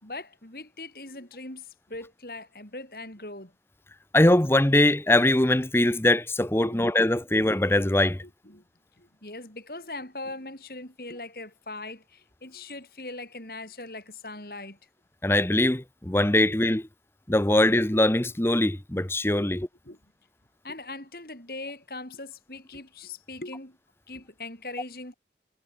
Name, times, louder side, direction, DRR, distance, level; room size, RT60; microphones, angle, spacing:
voice 1, 0.0-3.5 6.6-6.9 8.2-8.6 9.0-14.8 16.5-16.6 19.4-19.5 19.8-20.0 20.6-23.8 24.1-25.1, left 2 dB, 55° left, 4.9 m, -40 dB
voice 2, 4.1-8.2 15.2-16.8 17.3-19.7, left 1 dB, 15° left, 0.8 m, -22 dB
head